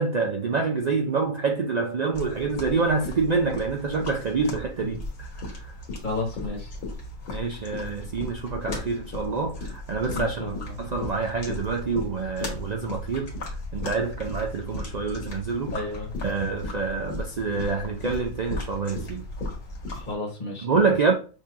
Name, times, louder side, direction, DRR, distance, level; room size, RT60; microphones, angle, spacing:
voice 1, 0.0-5.7 7.3-15.8 16.2-19.2 20.6-21.1, right 4 dB, 80° right, 0.3 m, -27 dB
sound 1, 2.1-20.1, left 2 dB, 75° left, 1.9 m, -36 dB
voice 2, 6.0-6.7 10.1-10.6 15.7-16.1 19.9-20.8, left 2 dB, 35° left, 1.3 m, -32 dB
6.3 x 2.8 x 2.5 m
omnidirectional pair, 1.4 m